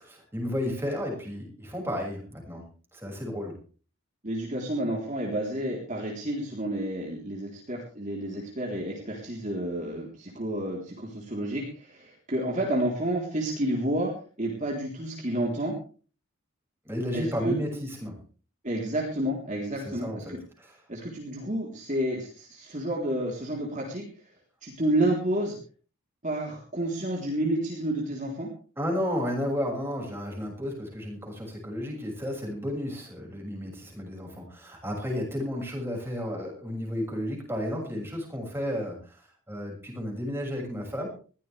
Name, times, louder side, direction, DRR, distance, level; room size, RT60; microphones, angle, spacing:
voice 1, 0.0-3.6 16.8-18.2 19.8-20.8 28.8-39.2 39.5-41.1, equal, 10° right, 0 dB, 6.5 m, -33 dB
voice 2, 4.2-15.8 17.1-17.6 18.6-20.4 20.9-24.1 24.6-25.6 26.2-28.5, right 1 dB, 35° right, -1 dB, 3.8 m, -30 dB
21.0 x 16.0 x 3.5 m, 0.39 s
head